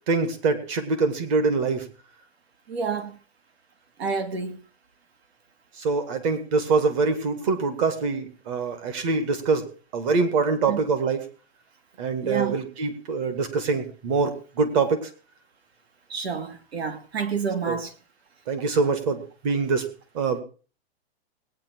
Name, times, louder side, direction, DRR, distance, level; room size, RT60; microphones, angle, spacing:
voice 1, 0.1-1.9 5.8-9.7 9.9-11.2 12.0-15.1 17.7-17.8 18.5-19.9 20.1-20.4, right 4 dB, 30° right, 1.9 m, -24 dB
voice 2, 2.7-3.2 4.0-4.6 10.6-10.8 12.2-12.6 16.1-17.9, right 5 dB, 65° right, 2.6 m, -29 dB
19.0 x 9.4 x 4.5 m
hypercardioid pair, 170°, 33 cm